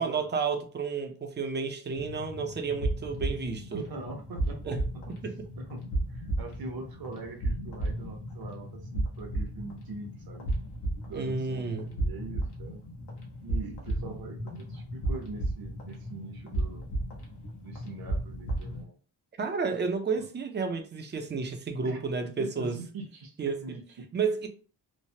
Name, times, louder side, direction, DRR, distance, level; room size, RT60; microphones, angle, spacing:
voice 1, 0.0-3.8 4.7-4.8 5.2-5.4 11.1-11.9 19.4-22.8 23.4-23.6 24.1-24.5, right 5 dB, 30° right, 0.4 m, -31 dB
sound 1, 1.9-18.8, right 1 dB, 80° left, 1.0 m, -34 dB
voice 2, 3.7-5.2 5.6-10.5 11.0-12.8 13.4-16.8 17.6-18.9 20.2-20.3 21.8-22.0 22.4-24.1, right 3 dB, 65° right, 0.8 m, -43 dB
3.1 x 2.1 x 2.7 m
wide cardioid pair, 175°, 39 cm